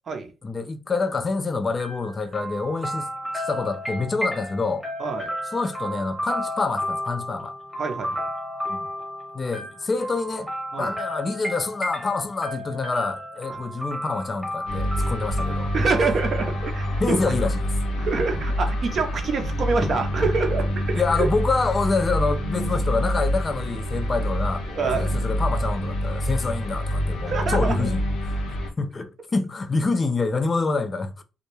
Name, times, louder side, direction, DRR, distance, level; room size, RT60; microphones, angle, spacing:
voice 1, 0.4-4.8 5.5-7.5 8.7-8.9 9.3-10.5 10.7-15.7 17.0-17.6 20.9-24.7 24.9-28.0 28.8-31.2, left 3 dB, 25° left, 0.3 m, -26 dB
sound 1, 1.8-17.6, equal, 5° left, 0.9 m, -33 dB
voice 2, 5.0-5.3 7.8-8.2 10.7-10.9 15.7-17.2 18.0-21.0 24.7-25.1 27.3-27.9, right 4 dB, 45° right, 0.5 m, -26 dB
sound 2, 14.7-28.7, equal, 75° left, 0.6 m, -26 dB
2.2 x 2.0 x 2.9 m
cardioid pair, 125°, 0 cm